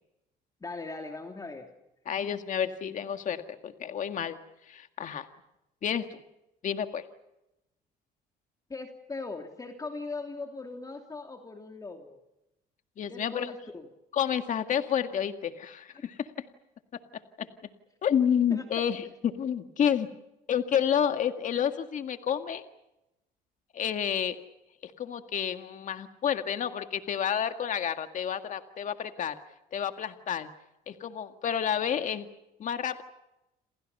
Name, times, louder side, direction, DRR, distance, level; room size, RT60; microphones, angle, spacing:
voice 1, 0.6-1.7 8.7-12.2 13.1-13.9 18.5-18.6, left 3 dB, 20° left, 4 dB, 2.9 m, -39 dB
voice 2, 2.1-4.4 4.7-5.3 5.8-6.2 6.6-7.0 13.0-13.5 14.1-16.5 17.4-17.5 18.0-20.1 20.5-22.6 23.7-24.4 24.8-29.4 29.7-30.5 30.9-32.3 32.6-33.0, left 8 dB, 50° left, 7 dB, 1.9 m, -30 dB
29.5 x 27.5 x 5.5 m, 0.91 s
cardioid pair, 110°, 17 cm